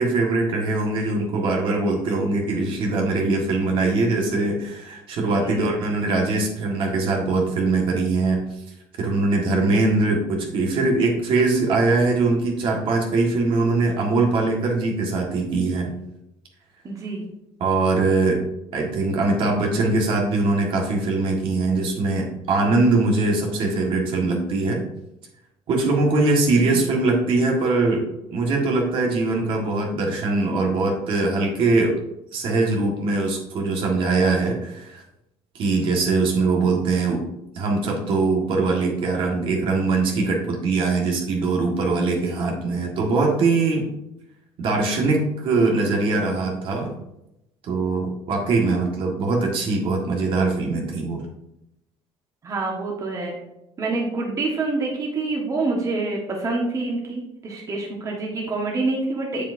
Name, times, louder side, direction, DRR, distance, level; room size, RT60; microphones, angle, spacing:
voice 1, 0.0-8.4 9.0-15.9 17.6-18.4 18.7-24.8 25.7-32.0 32.3-35.0 35.5-37.2 37.5-43.9 44.6-46.9 47.6-51.2, right 3 dB, 60° right, 0 dB, 1.7 m, -22 dB
voice 2, 5.3-5.7 9.7-10.0 16.8-17.2 26.7-26.9 42.3-42.5 52.4-53.4 53.8-59.5, right 3 dB, 35° right, -1 dB, 1.5 m, -27 dB
7.2 x 7.2 x 2.7 m, 0.86 s
cardioid pair, 125°, 10 cm